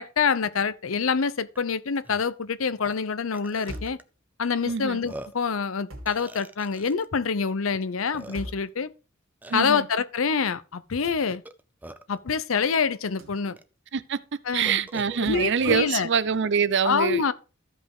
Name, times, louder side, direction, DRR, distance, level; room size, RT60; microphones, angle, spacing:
voice 1, 0.0-4.0 4.4-8.9 9.5-11.4 12.1-13.6 14.5-14.8 15.2-16.1 16.8-17.3, left 5 dB, 85° left, 0.7 m, -26 dB
Burping eructation, 1.6-1.7 2.0-2.2 2.9-3.0 3.3-4.0 4.7-4.8 5.0-5.5 6.1-7.1 7.7-7.8 8.1-8.7 9.4-9.8 11.3-12.2 13.0-13.1 13.6-13.7 14.6-15.9, right 1 dB, 10° right, 0.5 m, -42 dB
sound 1, 3.7-4.1 5.9-6.2 8.3-8.7 11.0-11.3 13.2-13.4 15.2-15.5, equal, 80° right, 2.4 m, -40 dB
voice 2, 4.6-5.0 9.5-9.9 13.9-14.2 14.5-17.3, right 6 dB, 60° right, 0.6 m, -25 dB
14.0 x 5.5 x 3.7 m
head